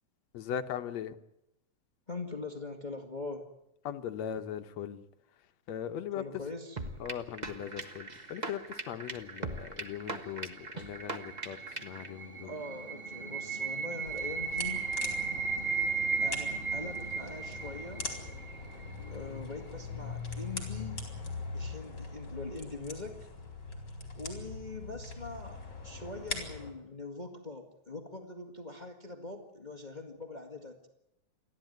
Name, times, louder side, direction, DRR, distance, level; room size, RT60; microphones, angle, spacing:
voice 1, 0.3-1.2 3.9-5.0 5.7-6.2 7.0-8.6 8.9-11.6 11.8-12.5, left 9 dB, 70° left, 9 dB, 2.1 m, -39 dB
voice 2, 2.1-3.5 6.1-6.8 12.4-14.8 16.2-18.1 19.1-21.1 21.5-23.3 24.1-30.9, left 3 dB, 20° left, 5 dB, 1.6 m, -42 dB
sound 1, 6.8-12.1, right 2 dB, 60° right, 0.4 m, -40 dB
sound 2, 10.2-19.2, right 5 dB, 20° right, 2.5 m, -35 dB
sound 3, 14.0-26.7, left 4 dB, 35° left, 4.8 m, -42 dB
28.5 x 12.0 x 9.2 m, 0.86 s
omnidirectional pair, 3.4 m